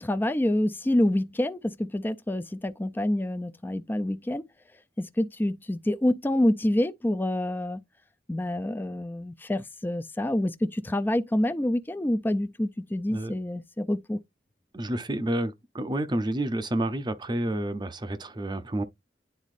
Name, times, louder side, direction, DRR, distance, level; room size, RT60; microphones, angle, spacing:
voice 1, 0.0-4.5 5.0-7.8 8.3-14.2, left 1 dB, 10° left, 0.4 m, -27 dB
voice 2, 14.7-18.8, right 1 dB, 25° right, 0.6 m, -29 dB
9.9 x 4.1 x 2.4 m
head